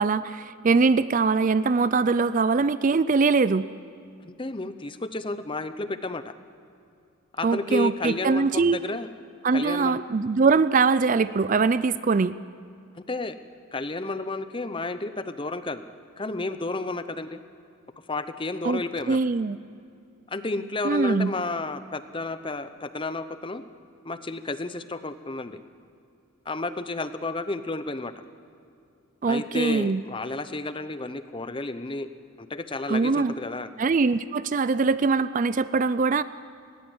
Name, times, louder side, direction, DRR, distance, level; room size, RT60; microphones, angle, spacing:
voice 1, 0.0-3.7 7.4-8.8 9.4-12.3 18.6-18.8 19.1-19.6 20.8-21.3 29.2-30.0 32.9-33.3 33.8-36.2, right 4 dB, 35° right, 15 dB, 0.4 m, -22 dB
voice 2, 4.2-6.3 7.3-9.1 9.5-10.0 12.9-13.4 13.7-15.8 16.2-17.4 18.1-19.2 20.3-23.6 24.0-25.6 26.5-28.1 29.3-32.1 32.4-33.7, left 2 dB, 25° left, 11 dB, 0.7 m, -31 dB
20.0 x 17.5 x 7.8 m, 2.5 s
head